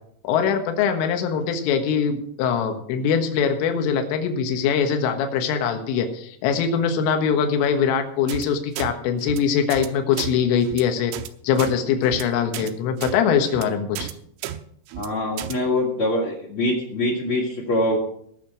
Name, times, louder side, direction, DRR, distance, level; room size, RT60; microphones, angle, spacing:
voice 1, 0.2-11.1 11.4-14.1, left 7 dB, 75° left, 5 dB, 3.9 m, -22 dB
sound 1, 8.3-8.5 8.8-8.9 9.2-9.4 9.7-9.9 10.1-10.3 10.6-10.8 11.1-11.3 11.6-11.7 12.0-12.2 12.5-12.7 13.0-13.1 13.5-13.7 14.0-14.1 14.4-14.6 14.9-15.1 15.4-15.5, right 12 dB, 85° right, 3.4 m, -32 dB
voice 2, 15.0-18.0, left 1 dB, 40° left, -1 dB, 2.0 m, -24 dB
18.5 x 6.8 x 6.0 m, 0.67 s
omnidirectional pair, 6.0 m